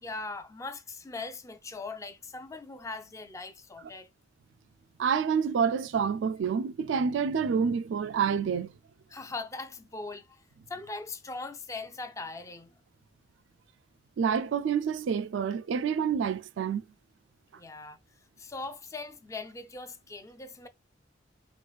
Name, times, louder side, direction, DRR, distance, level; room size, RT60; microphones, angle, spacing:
voice 1, 0.0-4.1 9.1-12.7 17.5-18.0 18.4-20.7, left 3 dB, 15° left, 0.4 m, -40 dB
voice 2, 5.0-8.7 14.2-16.8, right 6 dB, 75° right, 0.3 m, -28 dB
4.4 x 2.4 x 2.3 m
head